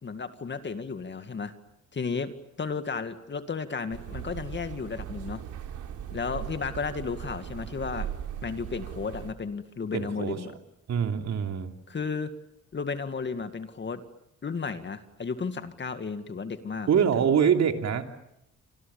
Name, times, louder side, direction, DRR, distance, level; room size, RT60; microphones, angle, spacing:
voice 1, 0.0-1.5 1.9-2.3 2.6-5.4 6.1-8.1 8.4-10.5 11.9-12.3 12.7-14.0 14.4-16.9, left 5 dB, 35° left, 9 dB, 2.2 m, -33 dB
sound 1, 3.9-9.3, right 10 dB, 80° right, 3.5 m, -38 dB
voice 2, 9.9-10.5 10.9-11.7 16.9-18.0, right 7 dB, 60° right, 5 dB, 3.1 m, -24 dB
28.0 x 27.0 x 7.2 m, 0.81 s
cardioid pair, 90°, 30 cm